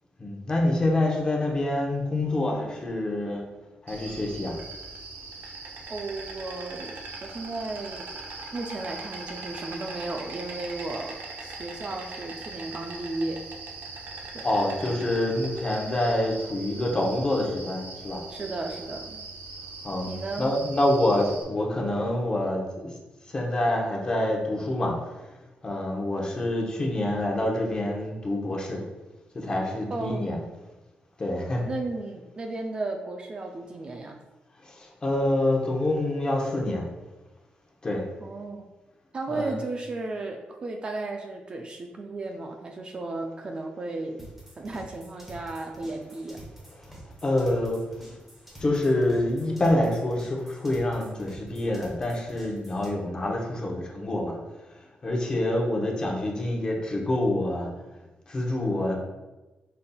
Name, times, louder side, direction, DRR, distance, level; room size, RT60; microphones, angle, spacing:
voice 1, 0.2-3.4 3.9-4.5 14.4-18.2 19.8-22.9 23.3-25.0 25.6-28.8 29.3-30.4 31.2-31.7 34.6-36.8 37.8-38.0 39.3-39.5 47.2-47.8 48.6-54.4 55.0-57.7 58.3-58.9, left 1 dB, 25° left, -1 dB, 0.8 m, -26 dB
Insect, 3.9-21.4, right 3 dB, 80° right, 0.7 m, -40 dB
voice 2, 5.9-7.0 7.2-8.1 8.5-13.4 14.3-14.5 18.3-19.2 20.1-20.6 29.9-30.5 31.7-34.2 38.2-38.7 39.1-44.3 44.6-46.4, right 2 dB, 30° right, 2 dB, 0.3 m, -34 dB
sound 1, 44.2-52.9, equal, 5° right, 1.0 m, -47 dB
5.4 x 4.0 x 2.3 m, 1.1 s
wide cardioid pair, 160°, 3 cm